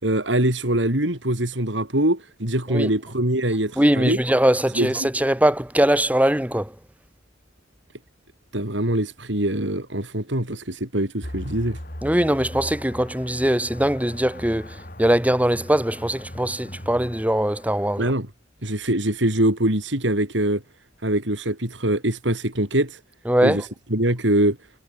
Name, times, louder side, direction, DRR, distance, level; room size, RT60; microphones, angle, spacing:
voice 1, 0.0-4.2 4.8-4.9 8.5-11.8 18.0-18.3 18.6-20.6 21.0-23.0 23.4-24.6, right 1 dB, 75° right, 5.6 m, -23 dB
voice 2, 3.8-6.8 12.0-18.1 23.3-23.7, right 1 dB, 10° right, 1.7 m, -21 dB
sound 1, 11.2-18.0, left 1 dB, 50° left, 7.7 m, -39 dB
head